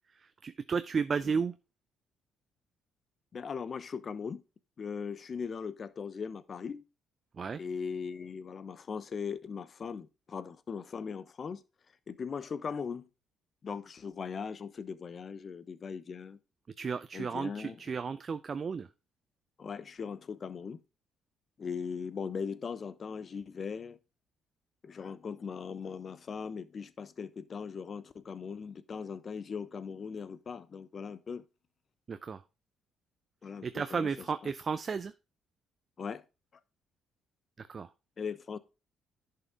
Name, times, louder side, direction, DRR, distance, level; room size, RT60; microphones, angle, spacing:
voice 1, 0.4-1.5 7.4-7.6 16.8-18.9 32.1-32.4 33.6-35.1 37.6-37.9, right 5 dB, 45° right, 0.6 m, -33 dB
voice 2, 3.3-4.4 4.8-6.8 7.6-11.6 12.1-13.0 13.6-16.4 17.1-17.8 19.6-20.8 21.6-24.0 24.8-31.4 33.4-34.1 36.0-36.2 38.2-38.6, left 6 dB, 45° left, 0.9 m, -39 dB
10.5 x 5.8 x 3.7 m
hypercardioid pair, 50°, 0 cm